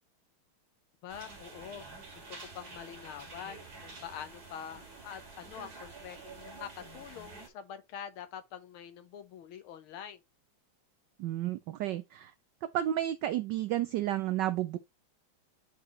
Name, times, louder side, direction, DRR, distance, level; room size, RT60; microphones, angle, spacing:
voice 1, 1.0-1.8 2.3-10.2, left 8 dB, 85° left, 1.7 m, -45 dB
sound 1, 1.1-7.5, right 3 dB, 45° right, 2.5 m, -48 dB
voice 2, 11.2-12.3 12.6-14.8, right 12 dB, 75° right, 1.0 m, -31 dB
9.0 x 3.9 x 3.0 m
omnidirectional pair, 2.3 m